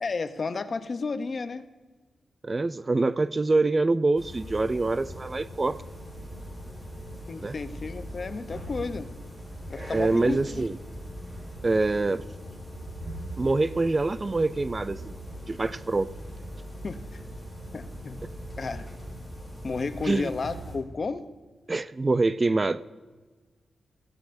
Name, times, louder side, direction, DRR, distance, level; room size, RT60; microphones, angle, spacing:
voice 1, 0.0-1.7 7.3-9.1 9.7-10.7 16.8-17.2 17.7-18.2 18.6-18.9 19.6-21.3, left 4 dB, 45° left, 11 dB, 0.7 m, -32 dB
voice 2, 2.4-5.8 7.4-7.6 9.9-10.8 11.6-12.2 13.4-15.2 15.5-16.1 20.0-20.3 21.7-22.8, right 3 dB, 30° right, 15 dB, 0.4 m, -25 dB
sound 1, 4.2-20.8, equal, 5° right, 4.7 m, -40 dB
16.0 x 14.0 x 2.6 m, 1.4 s
cardioid pair, 90°, 0 cm